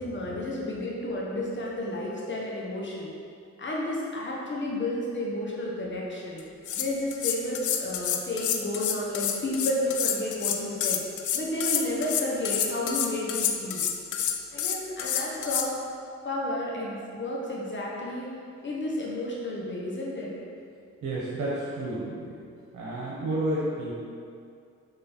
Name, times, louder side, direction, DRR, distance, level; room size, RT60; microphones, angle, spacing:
voice 1, 0.0-3.1 3.6-6.4 6.8-11.0 11.3-13.8 14.5-15.7 16.2-18.3 18.6-20.3, left 1 dB, 40° left, -4 dB, 1.2 m, -31 dB
sound 1, 6.4-6.5 6.7-15.7, left 9 dB, 80° left, 0.6 m, -28 dB
voice 2, 21.0-22.3 22.7-23.9, right 1 dB, 80° right, -7 dB, 1.3 m, -30 dB
6.6 x 4.1 x 4.5 m, 2.5 s
cardioid pair, 100°, 29 cm